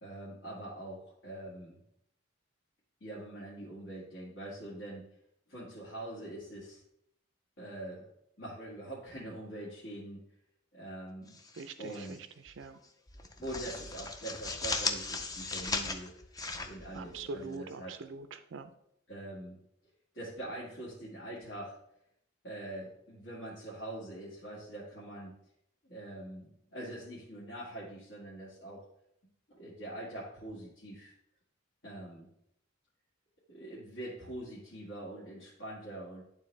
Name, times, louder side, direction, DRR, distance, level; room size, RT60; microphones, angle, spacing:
voice 1, 0.0-1.8 3.0-5.0 5.5-6.8 7.6-8.0 8.4-10.2 10.7-11.4 11.8-12.2 13.4-16.1 16.6-17.9 19.1-19.6 20.1-21.8 22.4-25.3 25.8-28.9 29.5-31.1 31.8-32.3 33.5-36.2, right 1 dB, 65° left, -9 dB, 2.0 m, -43 dB
sound 1, 11.3-12.2 12.5-12.7 13.1-17.6, left 3 dB, 20° left, 0.5 m, -37 dB
voice 2, 11.5-12.2 12.4-12.8 16.9-18.7, right 3 dB, 70° right, 10 dB, 0.4 m, -43 dB
11.0 x 3.8 x 3.2 m, 0.75 s
head